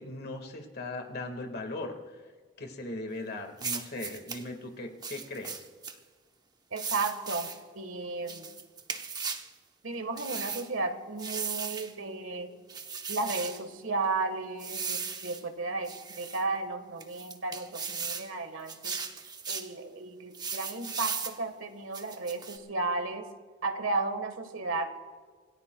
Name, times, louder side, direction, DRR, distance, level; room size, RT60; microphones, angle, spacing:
voice 1, 0.0-2.0 2.6-5.7, left 2 dB, 55° left, 4 dB, 1.8 m, -38 dB
sound 1, 3.6-4.4 5.0-6.0 6.8-7.6 8.3-9.5 10.2-10.7 11.2-11.9 12.7-13.6 14.6-15.4 15.8-16.4 17.0-18.3 18.7-19.7 20.3-21.4 21.9-22.6, right 5 dB, 20° right, 0.9 m, -37 dB
voice 2, 6.7-8.5 9.8-12.5 13.1-19.0 19.5-23.3 23.6-24.9, right 3 dB, 75° right, 7 dB, 1.5 m, -34 dB
27.0 x 18.0 x 2.3 m, 1.5 s
head